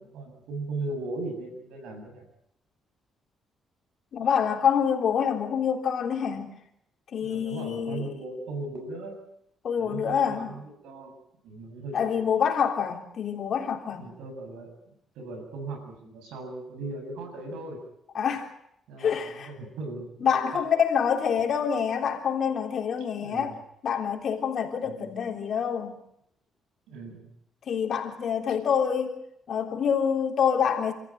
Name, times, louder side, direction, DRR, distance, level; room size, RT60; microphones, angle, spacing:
voice 1, 0.0-2.3 7.2-9.2 9.8-11.1 11.4-12.2 13.9-14.7 15.1-17.8 18.9-20.7 23.1-23.6 24.8-25.1 26.9-27.3, right 2 dB, 90° right, 2 dB, 7.6 m, -38 dB
voice 2, 4.1-6.6 7.1-8.1 9.6-10.5 11.9-14.1 18.1-18.6 19.0-19.5 20.2-23.5 23.8-26.0 27.7-29.2 29.5-30.9, left 7 dB, 60° left, 3 dB, 3.5 m, -26 dB
28.5 x 14.5 x 9.2 m, 0.76 s
cardioid pair, 90°, 0 cm